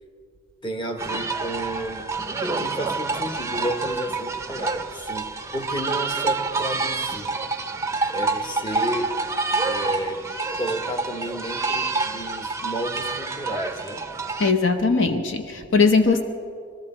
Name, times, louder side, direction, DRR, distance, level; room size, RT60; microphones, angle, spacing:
voice 1, 0.6-7.3 8.1-9.1 9.6-10.2 10.6-14.0, right 1 dB, 25° left, 4 dB, 1.0 m, -32 dB
sound 1, 1.0-14.5, right 3 dB, 15° right, 0.5 m, -28 dB
voice 2, 14.4-16.2, left 4 dB, 65° left, 6 dB, 0.8 m, -19 dB
22.0 x 13.0 x 4.3 m, 2.3 s
head